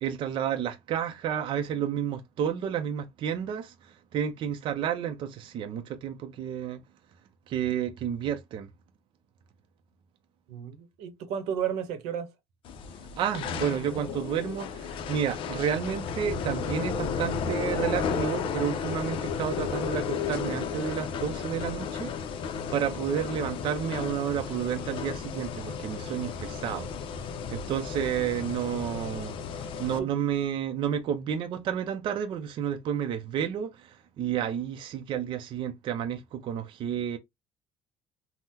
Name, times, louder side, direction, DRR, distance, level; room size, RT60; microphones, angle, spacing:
voice 1, 0.0-6.8 7.5-8.7 13.2-22.1 22.4-26.9 27.5-29.3 29.8-37.2, right 9 dB, 50° right, 0.5 m, -31 dB
voice 2, 10.5-12.3 30.0-30.1, right 8 dB, 90° right, 0.8 m, -33 dB
sound 1, 12.6-30.0, left 6 dB, 55° left, 0.5 m, -33 dB
3.6 x 2.1 x 2.7 m
cardioid pair, 135°, 11 cm